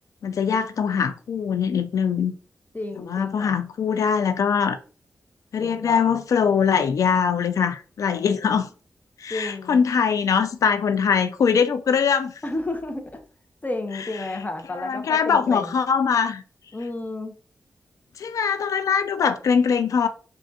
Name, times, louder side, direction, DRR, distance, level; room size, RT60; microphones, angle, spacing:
voice 1, 0.2-2.3 3.1-4.8 5.5-8.7 9.2-12.3 14.8-16.4 18.2-20.1, left 6 dB, 75° left, 0.4 m, -22 dB
voice 2, 2.7-3.6 5.6-6.2 8.2-8.6 9.3-9.8 12.4-13.2 13.6-15.8 16.7-17.3, left 2 dB, 30° left, 0.7 m, -32 dB
3.7 x 2.4 x 2.3 m
cardioid pair, 50°, 6 cm